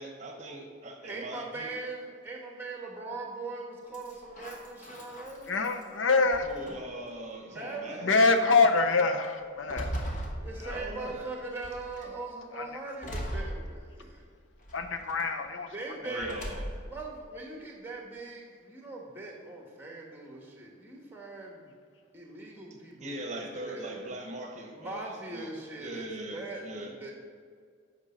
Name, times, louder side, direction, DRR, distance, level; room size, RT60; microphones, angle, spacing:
voice 1, 0.0-1.7 6.4-8.1 10.6-11.3 12.0-12.1 16.0-16.7 23.0-25.5 25.8-26.9, right 1 dB, 35° right, 2 dB, 1.0 m, -40 dB
voice 2, 1.0-5.6 7.4-8.0 10.3-14.2 15.6-16.3 16.8-21.7 22.1-24.1 24.7-27.1, right 2 dB, 10° right, -1 dB, 1.3 m, -41 dB
sound 1, 3.9-5.8 6.3-7.0 7.8-7.9 8.4-8.7 9.2-11.2 11.6-12.1 13.0-14.2 14.6-15.2 16.2-17.0, equal, 40° left, 1.0 m, -39 dB
voice 3, 5.5-6.5 8.0-10.0 10.6-10.8 12.6-12.7 14.7-15.7 16.1-16.4, left 4 dB, 70° left, 7 dB, 0.6 m, -25 dB
8.4 x 5.2 x 5.0 m, 2.1 s
head